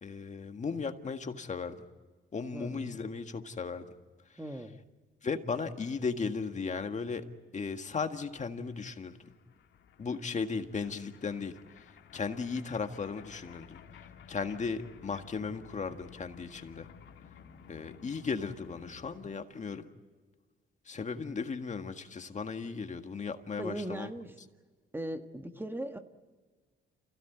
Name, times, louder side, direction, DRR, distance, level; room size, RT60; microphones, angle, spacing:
voice 1, 0.0-1.7 2.3-3.8 5.2-7.2 7.5-9.2 10.0-11.5 12.1-13.8 14.3-16.9 17.7-19.9 20.9-24.1, left 5 dB, 35° left, 7 dB, 1.7 m, -36 dB
voice 2, 2.5-3.0 4.4-4.8 23.6-24.4 24.9-26.0, right 1 dB, 10° right, 7 dB, 1.4 m, -39 dB
sound 1, 8.5-19.4, left 8 dB, 70° left, 2.1 m, -55 dB
28.0 x 16.5 x 9.4 m, 1.4 s
cardioid pair, 90°, 20 cm